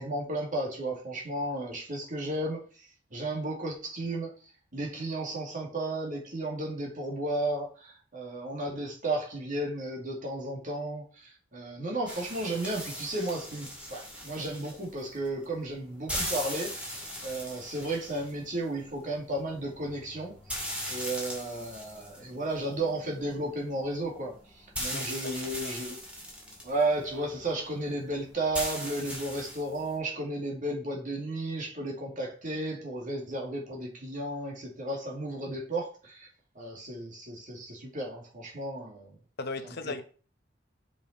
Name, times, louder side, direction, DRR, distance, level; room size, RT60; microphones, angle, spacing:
voice 1, 0.0-4.3 4.7-20.4 20.9-26.0 26.6-36.3 36.6-39.1 39.6-39.9, right 1 dB, 40° right, 2.3 m, -34 dB
sound 1, 12.1-29.9, equal, 5° right, 2.5 m, -40 dB
voice 2, 24.9-25.4 25.6-25.7 39.4-40.0, left 3 dB, 55° left, 1.0 m, -37 dB
7.0 x 5.5 x 4.2 m
head